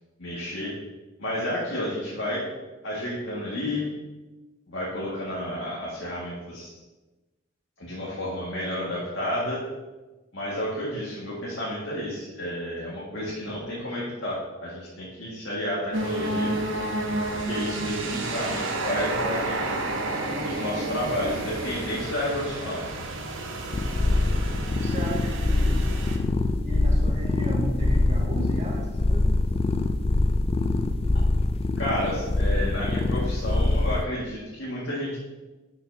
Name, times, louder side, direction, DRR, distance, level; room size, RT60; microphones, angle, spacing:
voice 1, 0.2-0.7 1.2-2.4 2.8-3.9 4.7-6.7 7.8-9.6 10.3-16.6 17.3-19.8 20.4-22.8 31.8-35.2, left 1 dB, 75° left, -7 dB, 2.0 m, -31 dB
sound 1, 15.9-26.2, right 2 dB, 85° right, 1.0 m, -31 dB
sound 2, 23.7-34.0, left 2 dB, 30° left, 0.3 m, -24 dB
voice 2, 24.7-25.9 26.6-29.4, right 1 dB, 35° right, -3 dB, 2.0 m, -34 dB
11.5 x 5.8 x 2.8 m, 1.2 s
head